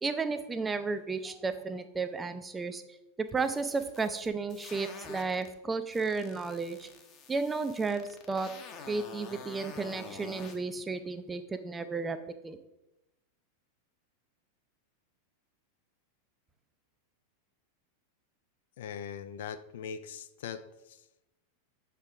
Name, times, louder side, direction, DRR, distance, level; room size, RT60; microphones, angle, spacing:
voice 1, 0.0-2.8 3.2-6.9 7.3-8.5 8.9-12.2 12.4-12.6, right 4 dB, 15° right, 10 dB, 0.4 m, -33 dB
sound 1, 3.3-5.5 5.9-10.6, left 5 dB, 35° left, 0.8 m, -48 dB
voice 2, 18.8-20.6 20.9-21.0, left 7 dB, 55° left, 12 dB, 0.3 m, -40 dB
7.3 x 4.6 x 3.5 m, 0.93 s
figure-of-eight pair, 90°, 0 cm